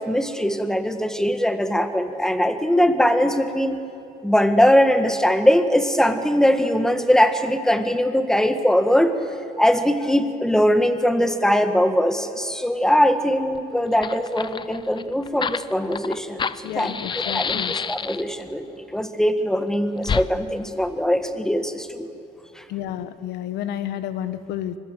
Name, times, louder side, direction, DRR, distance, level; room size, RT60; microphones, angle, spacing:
voice 1, 0.0-3.8 4.2-9.1 9.6-22.1 22.6-22.7, equal, 5° left, 9 dB, 1.6 m, -21 dB
Fire, 13.5-13.6 13.9-18.4 20.0-20.3, left 6 dB, 30° left, 0.6 m, -28 dB
voice 2, 16.6-17.7 22.7-24.8, left 11 dB, 85° left, 12 dB, 1.3 m, -30 dB
24.5 x 20.5 x 7.9 m, 2.5 s
cardioid pair, 110°, 17 cm